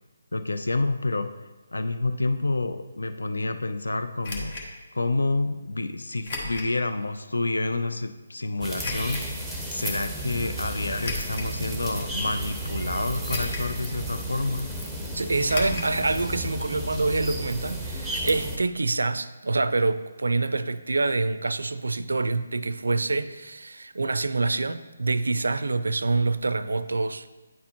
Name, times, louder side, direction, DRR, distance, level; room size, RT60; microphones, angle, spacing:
voice 1, 0.3-1.3 1.7-4.6 4.9-9.4 9.7-14.7, left 2 dB, 85° left, 9 dB, 0.4 m, -28 dB
sound 1, 4.2-4.7 6.2-6.7 7.3-7.4 8.8-9.2 10.9-11.5 12.2-12.3 13.3-13.8 14.0-14.1 15.5-15.9 16.2-16.3 16.6-16.7, left 2 dB, 45° left, 1.4 m, -34 dB
sound 2, 8.6-18.6, right 1 dB, ahead, 0.8 m, -33 dB
voice 2, 15.1-27.3, right 3 dB, 80° right, 13 dB, 0.4 m, -26 dB
9.4 x 4.2 x 2.9 m, 1.2 s
figure-of-eight pair, 155°, 0 cm